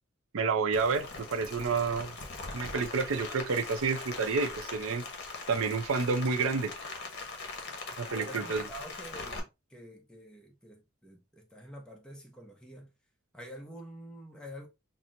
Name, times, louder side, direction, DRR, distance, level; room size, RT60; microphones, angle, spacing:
voice 1, 0.3-2.1 2.5-5.0 5.5-6.7 8.0-8.6, right 4 dB, 70° right, 0.5 m, -29 dB
Rain, 0.7-9.4, left 3 dB, 55° left, 0.9 m, -41 dB
voice 2, 8.1-12.9 13.3-14.7, equal, 5° left, 0.6 m, -47 dB
5.7 x 2.0 x 2.5 m
head